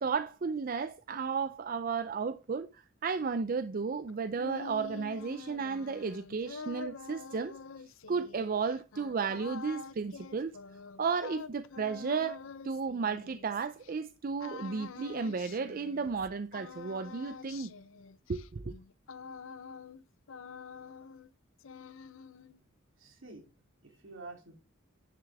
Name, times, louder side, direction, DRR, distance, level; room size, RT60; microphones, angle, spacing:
voice 1, 0.0-7.5 8.1-10.6 11.0-12.4 12.6-17.7 18.3-18.7, right 5 dB, 45° right, 0.4 m, -33 dB
sound 1, 4.1-13.9 14.4-16.3 16.5-20.0 20.3-21.3 21.6-22.6, left 5 dB, 75° left, 0.5 m, -47 dB
voice 2, 23.0-24.6, right 3 dB, 70° right, 3.2 m, -49 dB
10.5 x 6.6 x 3.5 m
head